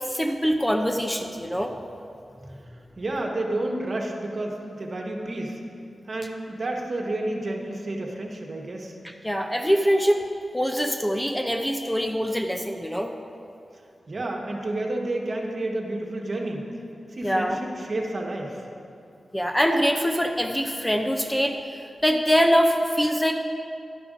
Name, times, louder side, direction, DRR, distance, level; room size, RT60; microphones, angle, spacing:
voice 1, 0.1-1.8 9.0-10.2 10.5-13.1 17.2-17.6 19.3-21.6 22.0-23.3, equal, 10° left, 3 dB, 0.5 m, -23 dB
voice 2, 3.0-5.6 6.1-8.9 14.1-16.7 17.1-18.6, right 2 dB, 55° right, 0 dB, 1.2 m, -30 dB
11.5 x 5.2 x 5.0 m, 2.5 s
wide cardioid pair, 75°, 0 cm